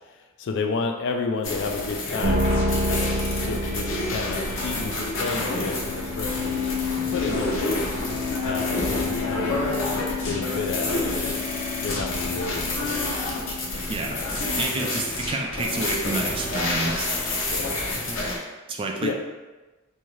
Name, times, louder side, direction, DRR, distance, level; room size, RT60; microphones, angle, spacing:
voice 1, 0.1-2.5 3.4-6.7 7.1-7.9 8.4-9.6 10.2-11.3 11.8-13.1 14.1-14.7 17.4-17.8 19.0-19.1, left 4 dB, 60° left, 4 dB, 0.3 m, -31 dB
sound 1, 1.4-18.4, left 2 dB, 80° left, 0.7 m, -28 dB
sound 2, 2.2-14.5, left 2 dB, 85° right, 0.7 m, -30 dB
voice 2, 13.9-14.2 14.6-17.1 18.7-19.1, right 3 dB, 25° right, 1 dB, 0.3 m, -29 dB
2.6 x 2.3 x 3.1 m, 1.2 s
head